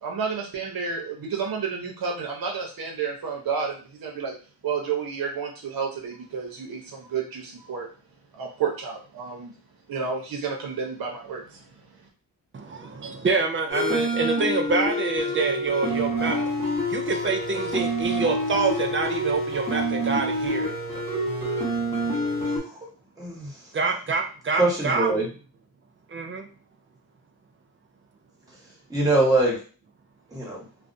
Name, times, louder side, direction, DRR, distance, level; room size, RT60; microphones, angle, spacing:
voice 1, 0.0-4.3 4.6-7.9 8.3-9.5 9.9-12.0, right 6 dB, 65° right, 0 dB, 0.7 m, -31 dB
voice 2, 12.5-16.5 16.9-20.8 23.7-25.2 26.1-26.5, right 4 dB, 35° right, 4 dB, 0.4 m, -26 dB
sound 1, 13.7-22.6, right 1 dB, 15° left, 1.2 m, -27 dB
voice 3, 23.2-23.6 24.6-25.3 28.9-29.6 30.3-30.6, right 2 dB, 10° right, -5 dB, 1.1 m, -23 dB
2.4 x 2.1 x 2.5 m, 0.38 s
wide cardioid pair, 105°, 37 cm